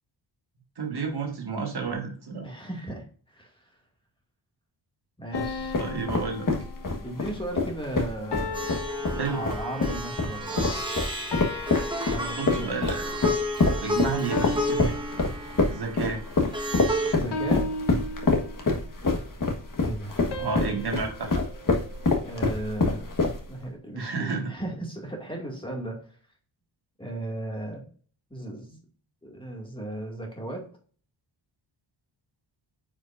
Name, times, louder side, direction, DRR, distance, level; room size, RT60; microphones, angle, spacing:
voice 1, 0.8-2.5 5.8-6.5 9.2-9.4 12.4-13.1 13.8-14.9 15.7-16.2 20.4-21.4 23.9-24.5, right 4 dB, 55° right, 1 dB, 1.9 m, -31 dB
voice 2, 2.4-3.7 5.2-5.8 7.0-8.7 9.3-10.9 12.0-12.8 17.1-17.6 19.8-20.3 20.5-20.8 22.2-23.1 23.5-26.2 27.0-27.8 28.3-28.8 29.2-30.6, right 1 dB, 10° left, 0 dB, 2.1 m, -36 dB
sound 1, 5.3-7.3 8.3-10.0 11.3-12.9 14.3-16.0 17.3-18.9 20.3-22.6, left 2 dB, 60° left, 1.2 m, -37 dB
sound 2, 5.3-23.6, left 3 dB, 40° left, 1.5 m, -26 dB
Plucked string instrument, 8.5-17.1, equal, 10° right, 1.4 m, -32 dB
9.4 x 5.1 x 2.6 m, 0.43 s
wide cardioid pair, 130°, 47 cm